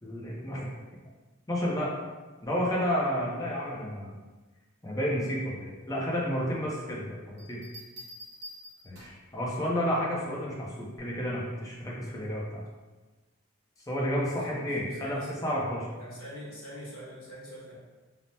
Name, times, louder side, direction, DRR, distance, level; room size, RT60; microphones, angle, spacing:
voice 1, 0.0-0.7 1.5-1.9 2.4-4.2 4.8-7.6 8.8-12.6 13.9-15.8, equal, 15° left, -4 dB, 0.5 m, -31 dB
Bell, 7.4-9.3 10.9-11.3, equal, 50° right, 0.7 m, -47 dB
voice 2, 14.0-15.6 16.0-17.7, equal, 90° left, -7 dB, 1.2 m, -45 dB
3.2 x 2.0 x 2.7 m, 1.2 s
head